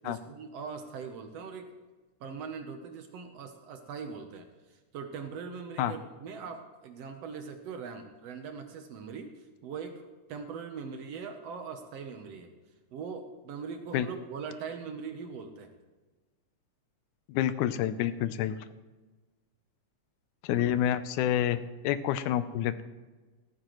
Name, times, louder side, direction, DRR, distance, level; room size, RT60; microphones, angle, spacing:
voice 1, 0.0-1.7 2.2-12.5 12.9-15.7, right 5 dB, 65° right, 6 dB, 1.8 m, -41 dB
voice 2, 17.3-18.6 20.4-22.8, left 11 dB, 85° left, 13 dB, 2.1 m, -28 dB
15.0 x 14.0 x 3.1 m, 1.3 s
omnidirectional pair, 3.4 m